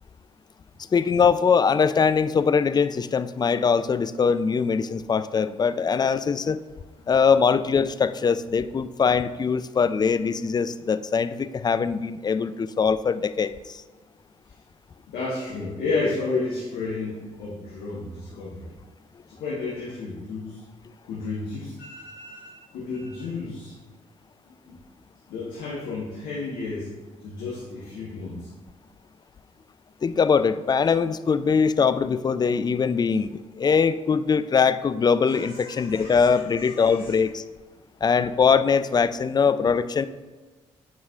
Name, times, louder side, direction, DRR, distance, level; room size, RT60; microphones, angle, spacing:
voice 1, 0.9-6.6 7.1-13.8 30.0-37.4 38.0-40.1, left 6 dB, 25° left, 14 dB, 0.4 m, -22 dB
voice 2, 15.1-18.7 19.3-20.6 21.0-23.7 24.7-24.8 25.3-26.9 27.2-28.5 35.3-37.2, left 3 dB, 75° left, -6 dB, 1.2 m, -32 dB
8.2 x 4.7 x 2.4 m, 1.3 s
hypercardioid pair, 45°, 15 cm